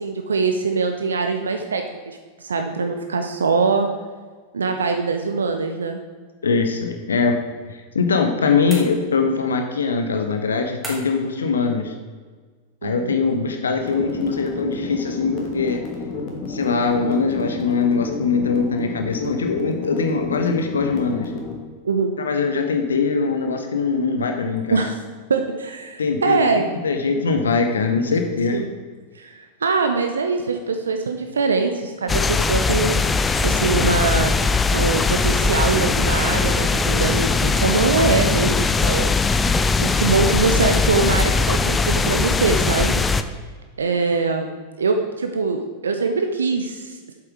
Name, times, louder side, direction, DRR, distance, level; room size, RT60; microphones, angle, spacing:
voice 1, 0.0-3.9 4.5-6.0 12.8-13.2 21.8-22.1 24.7-25.0 25.3-26.7 27.1-27.2 28.5-28.6 29.2-29.3 29.6-33.1 33.4-34.3 34.7-39.1 39.8-42.9 43.8-44.5 44.8-47.0, right 4 dB, 70° right, 5 dB, 0.6 m, -22 dB
voice 2, 6.4-7.4 7.7-11.9 12.8-15.8 16.5-21.3 22.2-24.8 26.0-26.4 26.8-28.6, left 4 dB, 70° left, 5 dB, 0.7 m, -22 dB
sound 1, 8.7-9.4 10.8-11.3, right 1 dB, 5° right, 2.7 m, -36 dB
sound 2, 13.8-21.5, left 4 dB, 40° left, 1.9 m, -31 dB
sound 3, 32.1-43.2, left 4 dB, 15° left, 0.4 m, -20 dB
7.8 x 7.4 x 4.8 m, 1.5 s
figure-of-eight pair, 90°, 0 cm